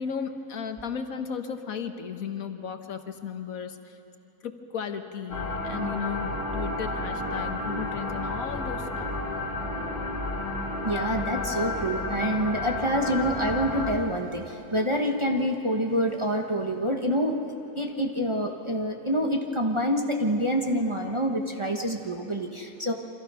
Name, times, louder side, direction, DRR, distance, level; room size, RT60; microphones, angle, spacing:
voice 1, 0.0-4.0 4.4-9.1, left 6 dB, 70° left, 7 dB, 1.5 m, -35 dB
sound 1, 5.3-13.9, left 2 dB, 40° left, 2.8 m, -31 dB
voice 2, 10.8-17.3 17.8-22.9, equal, 20° right, 2 dB, 1.0 m, -27 dB
28.0 x 25.0 x 5.6 m, 2.9 s
omnidirectional pair, 1.6 m